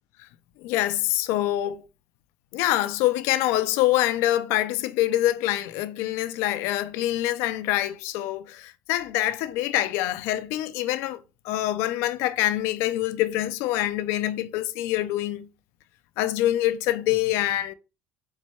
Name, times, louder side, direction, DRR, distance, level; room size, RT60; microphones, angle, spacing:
voice 1, 0.6-1.8 2.5-11.2 11.4-15.5 16.2-17.7, left 14 dB, 70° left, 0.4 m, -25 dB
4.6 x 2.2 x 4.2 m
supercardioid pair, 90°, 4 cm